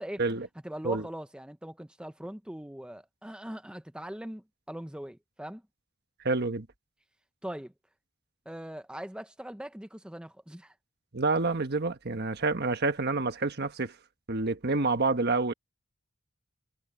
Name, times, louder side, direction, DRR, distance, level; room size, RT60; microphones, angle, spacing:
voice 1, 0.6-5.6 7.4-7.7 8.5-10.7, right 1 dB, 5° right, 0.7 m, -41 dB
voice 2, 6.2-6.7 11.1-13.9 14.3-15.5, right 3 dB, 50° right, 1.3 m, -28 dB
head